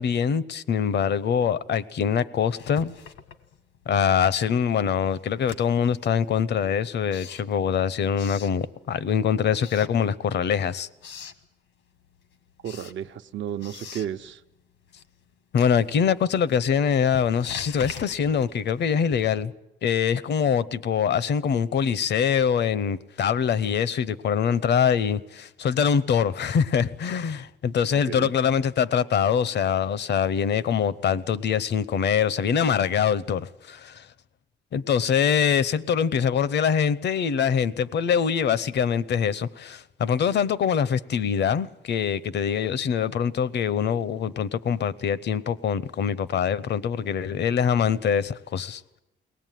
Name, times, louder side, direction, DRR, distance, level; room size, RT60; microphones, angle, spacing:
voice 1, 0.0-2.9 3.9-10.9 15.5-19.5 19.8-34.1 34.7-49.0, left 7 dB, 60° left, 0.8 m, -24 dB
Writing, 2.4-4.0 4.3-9.1 9.5-10.5 10.8-11.5 11.9-19.5, left 7 dB, 80° left, 1.6 m, -44 dB
voice 2, 12.6-14.4 28.1-28.4, right 9 dB, 70° right, 0.9 m, -33 dB
22.5 x 18.5 x 9.2 m
cardioid pair, 90°, 20 cm